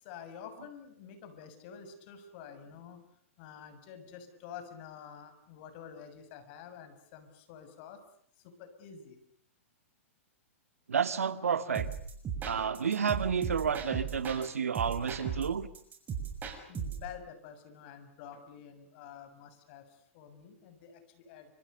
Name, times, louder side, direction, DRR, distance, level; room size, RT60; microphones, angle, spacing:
voice 1, 0.0-3.0 3.4-8.0 8.4-9.2 16.7-19.8 20.1-21.5, left 8 dB, 50° left, 9 dB, 6.7 m, -48 dB
voice 2, 10.9-11.9 12.4-15.7, right 6 dB, 85° right, 11 dB, 2.1 m, -30 dB
sound 1, 11.7-14.5 14.7-17.1, right 7 dB, 25° right, 6.7 m, -37 dB
30.0 x 26.5 x 6.8 m, 0.63 s
hypercardioid pair, 120°, 8 cm